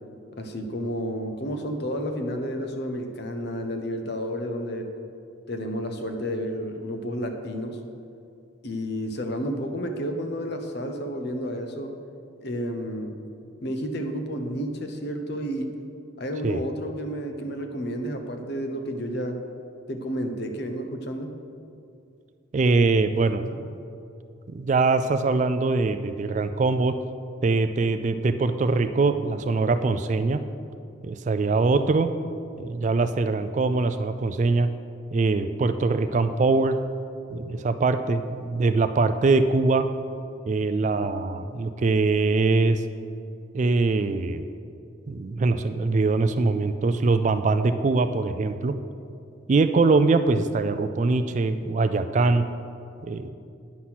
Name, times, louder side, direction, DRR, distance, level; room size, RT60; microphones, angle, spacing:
voice 1, 0.4-4.9 5.5-7.8 8.6-11.9 12.4-13.1 13.6-15.7 16.2-19.4 19.9-21.3, equal, 55° left, 5 dB, 0.8 m, -31 dB
voice 2, 22.5-23.7 24.5-26.9 27.4-30.4 31.0-32.1 32.6-34.7 35.1-36.8 37.3-39.9 40.5-42.8 43.5-44.5 45.1-48.7 49.5-52.4 53.0-53.3, right 3 dB, 35° right, 9 dB, 0.3 m, -22 dB
9.6 x 5.9 x 5.9 m, 2.5 s
head